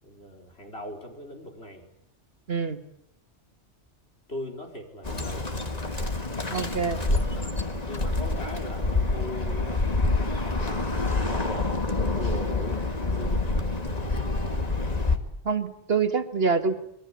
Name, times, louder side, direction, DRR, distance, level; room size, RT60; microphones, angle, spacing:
voice 1, 0.0-1.8 4.3-5.4 7.1-7.6 7.9-10.9 11.3-11.7 12.1-13.6, left 1 dB, 65° left, 2 dB, 5.0 m, -40 dB
Bird, 5.0-15.2, left 2 dB, 35° left, 2.2 m, -27 dB
voice 2, 6.5-7.0 15.4-16.8, right 5 dB, 60° right, 8 dB, 2.0 m, -26 dB
26.5 x 22.5 x 8.5 m, 0.74 s
omnidirectional pair, 1.2 m